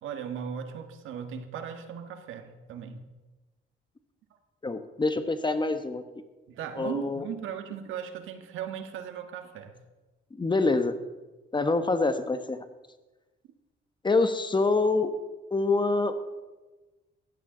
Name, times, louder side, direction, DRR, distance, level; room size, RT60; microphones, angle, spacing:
voice 1, 0.0-3.0 6.5-9.7, right 8 dB, 85° right, 7 dB, 1.6 m, -37 dB
voice 2, 4.6-6.0 6.8-7.2 10.3-11.0 11.5-12.6 14.0-15.1 15.5-16.2, left 3 dB, 25° left, 9 dB, 1.1 m, -25 dB
17.5 x 15.0 x 3.9 m, 1.2 s
cardioid pair, 90°, 20 cm